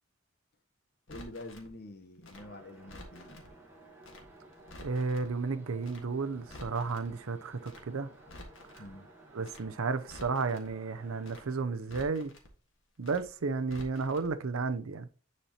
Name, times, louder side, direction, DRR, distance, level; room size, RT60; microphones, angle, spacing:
Crackle, 1.1-1.7 2.2-3.5 4.0-4.3 4.5-5.3 5.8-6.1 6.3-7.1 7.6-7.9 8.2-8.9 9.4-9.7 10.0-10.7 11.2-11.5 11.8-12.5 13.0-13.3 13.6-14.3 14.5-14.7, left 1 dB, 65° left, 1.6 m, -50 dB
voice 1, 1.1-3.5 8.8-9.1, left 1 dB, 45° left, 0.9 m, -47 dB
sound 1, 2.3-11.6, right 2 dB, 10° right, 1.7 m, -55 dB
voice 2, 4.8-8.1 9.3-12.3 13.0-15.1, right 4 dB, 85° right, 0.6 m, -33 dB
9.9 x 4.3 x 2.9 m
head